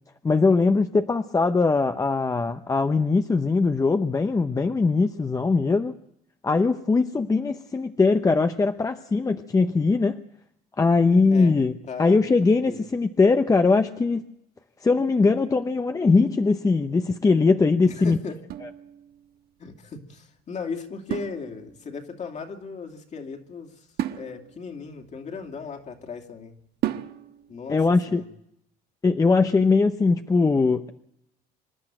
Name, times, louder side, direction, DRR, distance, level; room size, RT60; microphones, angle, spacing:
voice 1, 0.2-5.9 6.4-10.2 10.8-11.7 12.0-14.3 14.8-18.2 27.7-28.2 29.0-30.9, left 4 dB, 20° left, 7 dB, 0.8 m, -21 dB
voice 2, 11.8-12.3 12.6-12.9 17.9-18.4 19.6-23.9 24.2-26.5 27.5-28.3, left 5 dB, 45° left, 4 dB, 2.7 m, -37 dB
sound 1, 18.4-19.5 21.1-22.0 24.0-26.0 26.8-27.6, right 12 dB, 70° right, 1.3 m, -34 dB
26.0 x 11.5 x 9.0 m, 0.75 s
cardioid pair, 110°, 17 cm